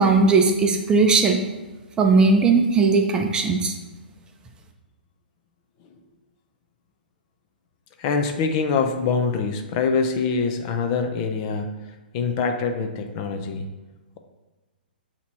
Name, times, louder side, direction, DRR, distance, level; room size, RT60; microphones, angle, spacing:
voice 1, 0.0-1.4 2.0-3.7, right 4 dB, 15° right, 3 dB, 0.6 m, -18 dB
voice 2, 8.0-11.7 12.1-13.7, left 5 dB, 35° left, 6 dB, 0.6 m, -24 dB
8.3 x 2.9 x 4.4 m, 1.2 s
figure-of-eight pair, 115°, 5 cm